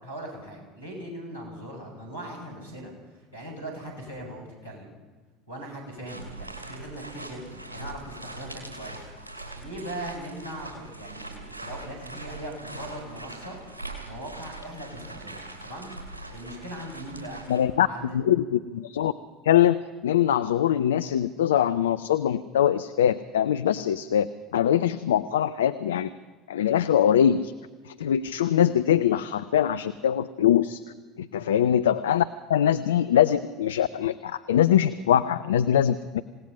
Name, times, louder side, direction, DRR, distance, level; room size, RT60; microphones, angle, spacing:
voice 1, 0.0-4.9 5.5-9.0 9.5-13.6 14.0-15.9 16.3-17.4 17.8-18.2 31.3-31.6, right 1 dB, 90° left, -2 dB, 6.4 m, -40 dB
sound 1, 6.1-17.7, right 2 dB, 85° right, 2.8 m, -41 dB
voice 2, 17.5-17.9 18.1-19.1 19.4-26.1 26.5-27.5 27.9-30.8 31.2-32.2 32.5-36.2, left 10 dB, 70° left, 13 dB, 0.5 m, -23 dB
27.0 x 17.5 x 5.6 m, 1.4 s
figure-of-eight pair, 65°, 0 cm